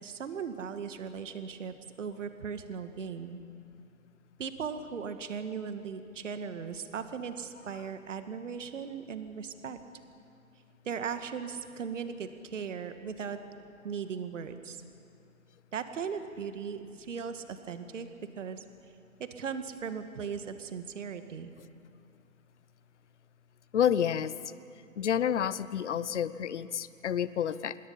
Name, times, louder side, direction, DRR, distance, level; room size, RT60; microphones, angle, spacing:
voice 1, 0.0-3.4 4.4-9.8 10.8-13.4 13.8-14.8 15.7-18.1 18.4-18.6 19.2-21.5, right 6 dB, 60° right, 9 dB, 1.7 m, -38 dB
voice 2, 23.7-24.3 25.0-27.8, left 9 dB, 55° left, 16 dB, 0.9 m, -29 dB
25.5 x 21.5 x 5.6 m, 2.5 s
hypercardioid pair, 150°, 42 cm